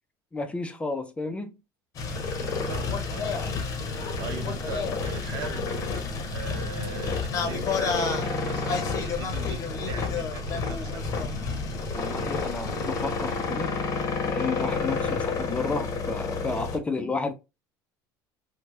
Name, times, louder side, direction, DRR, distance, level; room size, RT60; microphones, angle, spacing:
voice 1, 0.3-1.6 12.0-13.7 14.2-17.3, left 3 dB, 15° left, 0.3 m, -31 dB
sound 1, 1.9-16.8, left 4 dB, 40° left, 0.7 m, -29 dB
voice 2, 2.7-3.3 4.2-5.7 6.3-11.0 15.0-15.2, right 7 dB, 65° right, 0.7 m, -41 dB
3.1 x 2.0 x 2.9 m
cardioid pair, 125°, 9 cm